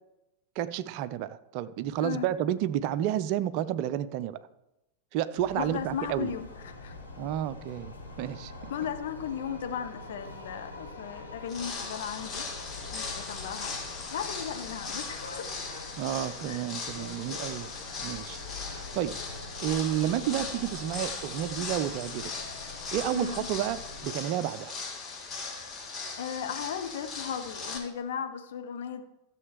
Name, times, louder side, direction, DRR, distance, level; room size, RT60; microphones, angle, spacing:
voice 1, 0.6-4.4 5.1-6.3 7.2-8.7 16.0-17.7 18.0-19.4 19.6-22.3 22.9-24.7, right 11 dB, 45° right, 14 dB, 0.6 m, -31 dB
sound 1, 5.4-24.1, left 3 dB, 80° left, 2.0 m, -45 dB
voice 2, 5.6-6.9 8.7-12.5 12.9-13.7 14.1-15.7 16.5-16.6 23.1-23.5 26.2-29.0, left 8 dB, 60° left, 6 dB, 1.1 m, -36 dB
sound 2, 11.5-27.8, left 4 dB, 25° left, 2.1 m, -39 dB
14.0 x 7.0 x 4.8 m, 0.95 s
figure-of-eight pair, 90°, 0 cm